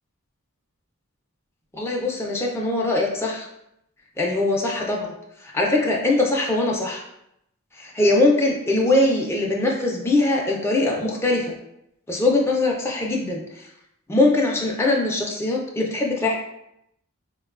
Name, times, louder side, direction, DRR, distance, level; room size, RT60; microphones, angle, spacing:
voice 1, 1.7-3.5 4.2-5.1 5.5-7.0 7.8-11.6 12.1-13.4 14.1-16.4, left 2 dB, 10° left, -2 dB, 0.3 m, -21 dB
4.4 x 2.2 x 2.3 m, 0.80 s
head